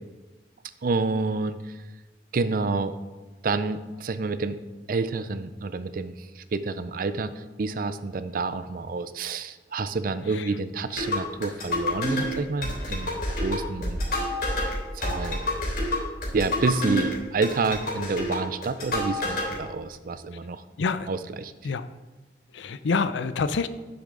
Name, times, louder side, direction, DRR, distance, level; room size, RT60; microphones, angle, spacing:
voice 1, 0.8-1.8 2.3-3.0 3.4-4.6 4.9-14.0 14.9-15.4 16.3-20.6 21.1-21.5, right 3 dB, 50° right, 13 dB, 0.4 m, -28 dB
sound 1, 10.9-19.5, left 1 dB, 55° left, 3.3 m, -29 dB
voice 2, 20.8-21.1 21.6-21.9 22.5-23.7, left 4 dB, 85° left, 13 dB, 0.5 m, -27 dB
9.7 x 7.1 x 3.8 m, 1.2 s
head